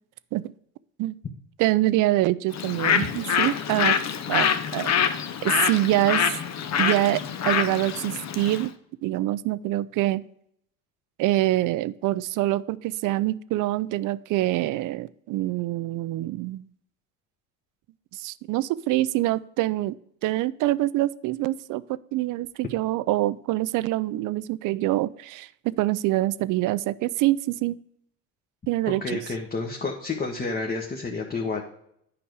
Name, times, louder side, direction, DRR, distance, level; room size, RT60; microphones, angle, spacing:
voice 1, 1.6-4.0 4.3-4.9 5.4-6.3 6.8-8.7 9.0-10.2 11.2-16.6 18.1-20.0 20.2-21.8 22.1-27.8 28.7-29.2, right 16 dB, 55° right, 18 dB, 0.5 m, -25 dB
Bird, 2.5-8.7, left 8 dB, 45° left, 0.8 m, -25 dB
voice 2, 29.0-31.6, left 3 dB, 25° left, 1 dB, 1.1 m, -30 dB
8.8 x 5.1 x 4.7 m, 0.72 s
supercardioid pair, 80°, 39 cm